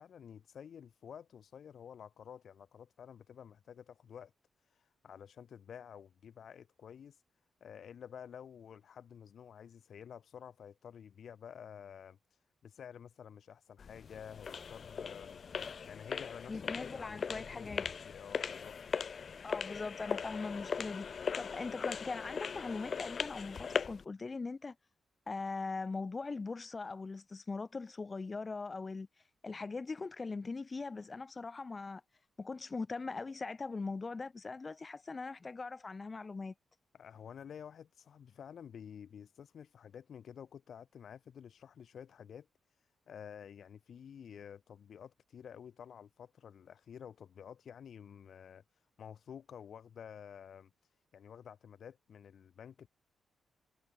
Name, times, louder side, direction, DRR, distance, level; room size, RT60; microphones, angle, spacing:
voice 1, 0.0-4.3 4.7-7.2 7.6-12.2 12.6-15.4 15.9-18.8 36.9-42.5 43.1-48.6 49.0-50.7 51.1-52.9, left 8 dB, 65° left, 1.8 m, -51 dB
sound 1, 13.8-24.0, left 6 dB, 45° left, 0.8 m, -39 dB
voice 2, 16.5-17.9 19.4-24.7 25.3-29.1 29.4-32.0 32.4-36.5, left 4 dB, 30° left, 2.6 m, -41 dB
cardioid pair, 115°, 0 cm